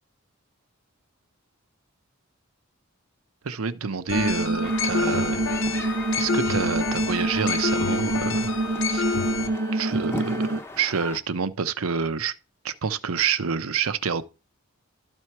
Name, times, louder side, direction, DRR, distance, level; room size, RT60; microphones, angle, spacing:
voice 1, 3.4-5.4 6.1-8.6 8.9-9.2 9.7-12.3 12.6-14.2, right 6 dB, 85° right, 0.7 m, -28 dB
sound 1, 4.1-9.5, left 6 dB, 60° left, 0.7 m, -29 dB
sound 2, 4.1-10.6, right 2 dB, 40° right, 0.4 m, -27 dB
sound 3, 4.6-11.2, left 2 dB, 10° left, 0.7 m, -38 dB
13.0 x 4.5 x 4.6 m
head